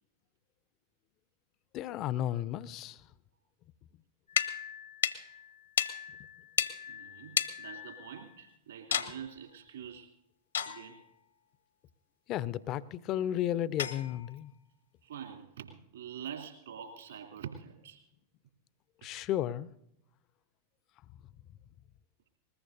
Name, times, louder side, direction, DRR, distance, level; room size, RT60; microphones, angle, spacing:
voice 1, 1.7-3.0 12.3-14.5 19.0-19.7, left 12 dB, 35° left, 0.5 m, -33 dB
sound 1, 4.3-8.4 8.9-9.2 10.5-11.1 13.8-14.4, left 9 dB, 70° left, 0.9 m, -34 dB
voice 2, 6.9-10.1 10.7-11.0 15.0-18.0, right 8 dB, 65° right, 2.8 m, -45 dB
21.0 x 20.5 x 2.7 m
figure-of-eight pair, 90°, 0 cm